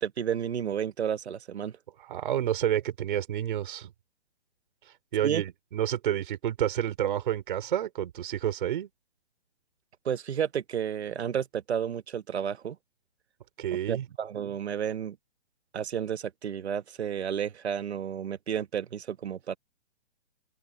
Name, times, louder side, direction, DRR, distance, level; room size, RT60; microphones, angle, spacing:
voice 1, 0.0-1.8 5.2-5.4 10.0-12.8 13.9-15.2 15.7-19.6, right 8 dB, 65° right, 1.4 m, -31 dB
voice 2, 2.0-3.9 4.9-8.9 13.6-14.0, right 11 dB, 45° right, 4.0 m, -29 dB
open air
hypercardioid pair, 165°, 35 cm